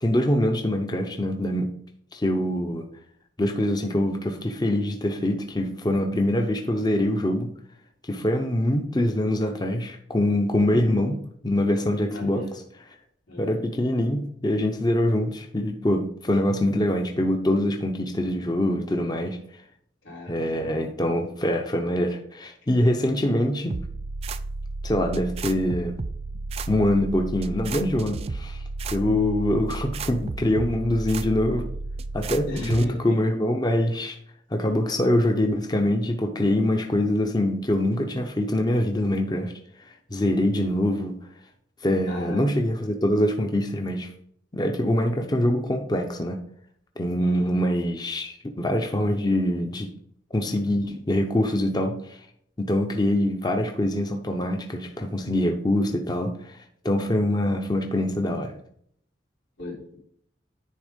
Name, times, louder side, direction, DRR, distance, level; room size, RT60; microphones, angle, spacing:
voice 1, 0.0-1.7 2.1-2.8 3.4-7.5 8.1-11.1 11.4-12.4 13.4-19.4 20.3-23.8 24.8-26.0 26.7-28.6 28.9-31.7 32.1-34.2 34.5-39.5 39.8-41.2 41.8-44.1 44.5-46.4 47.0-49.9 50.3-52.2 52.6-56.6 56.8-58.5, left 1 dB, 20° left, 4 dB, 0.6 m, -24 dB
voice 2, 12.0-12.5 13.3-13.6 20.0-20.4 32.5-33.2 42.0-42.4 47.2-47.5 59.6-60.0, left 2 dB, 90° left, -4 dB, 3.2 m, -36 dB
sound 1, 23.7-32.9, right 3 dB, 35° right, 0.4 m, -33 dB
9.8 x 3.5 x 5.1 m, 0.66 s
head